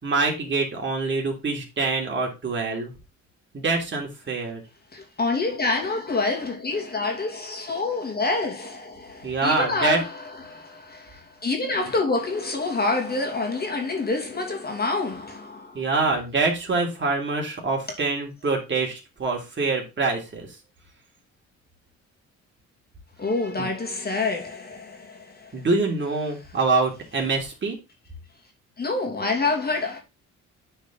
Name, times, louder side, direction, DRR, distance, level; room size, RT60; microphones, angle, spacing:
voice 1, 0.0-2.9 3.5-4.6 9.2-10.0 15.7-20.5 23.6-23.7 25.5-27.8, right 3 dB, 40° right, 3.1 m, -25 dB
voice 2, 4.9-15.8 23.2-25.7 28.8-30.0, left 3 dB, 30° left, 2.5 m, -27 dB
8.9 x 4.5 x 3.8 m
cardioid pair, 90°, 30 cm